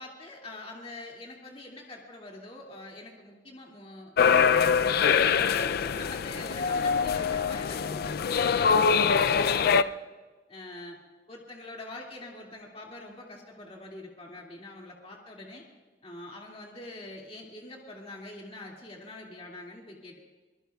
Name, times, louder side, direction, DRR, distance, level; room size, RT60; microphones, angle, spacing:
voice 1, 0.0-4.5 5.2-9.9 10.5-11.0 11.3-15.6 16.0-20.2, left 2 dB, 35° left, -2 dB, 2.3 m, -44 dB
sound 1, 4.2-9.8, left 6 dB, 55° left, 0.4 m, -24 dB
24.0 x 21.0 x 2.3 m, 1.3 s
head